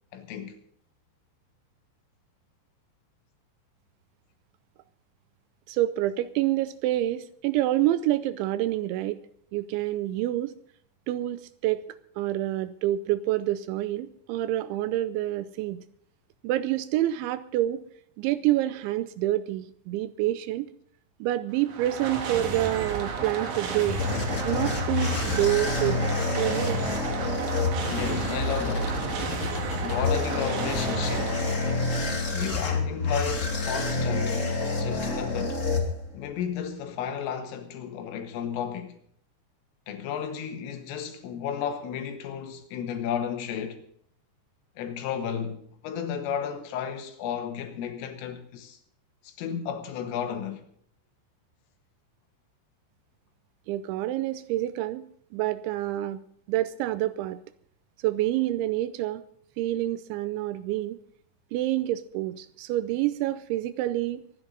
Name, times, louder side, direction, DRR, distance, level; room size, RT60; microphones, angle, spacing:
voice 1, 0.1-0.5 27.8-29.1 29.8-31.6 32.3-34.5 34.8-35.6 36.1-39.0 39.9-43.8 44.8-48.8 49.2-50.6, left 8 dB, 90° left, 4.3 m, -33 dB
voice 2, 5.7-9.2 9.5-10.5 11.1-11.8 12.2-15.8 16.4-17.8 18.2-20.7 21.2-24.0 24.4-26.0 26.4-26.8 53.7-56.2 56.5-57.4 58.0-59.2 59.6-61.0 61.5-64.2, right 14 dB, 80° right, 2.9 m, -27 dB
sound 1, 21.5-32.4, right 5 dB, 55° right, 2.5 m, -33 dB
sound 2, 23.5-36.4, left 3 dB, 35° left, 1.2 m, -28 dB
24.5 x 10.0 x 3.9 m
omnidirectional pair, 5.6 m